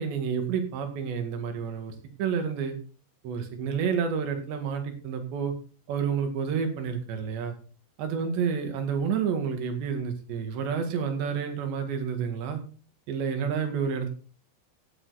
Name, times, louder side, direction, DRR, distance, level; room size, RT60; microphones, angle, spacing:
voice 1, 0.0-2.8 3.2-5.5 5.9-7.6 8.0-12.6 13.1-14.1, right 6 dB, 85° right, 6 dB, 4.3 m, -29 dB
16.0 x 9.3 x 4.2 m, 0.38 s
omnidirectional pair, 4.9 m